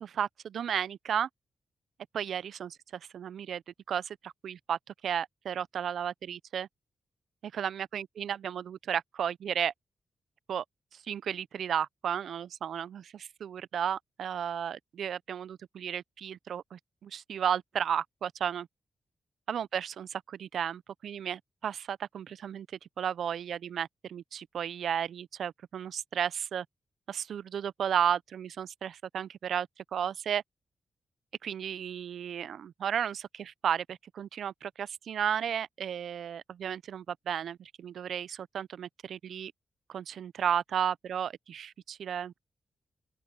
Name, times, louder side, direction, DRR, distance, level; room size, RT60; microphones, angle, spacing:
voice 1, 0.0-1.3 2.1-2.8 3.1-3.6 3.9-4.8 5.0-6.7 7.4-9.7 10.5-10.6 11.1-18.7 19.5-22.7 23.0-26.7 27.1-30.4 31.4-39.5 39.9-42.4, right 8 dB, 85° right, 0.3 m, -33 dB
open air
cardioid pair, 90°, 0 cm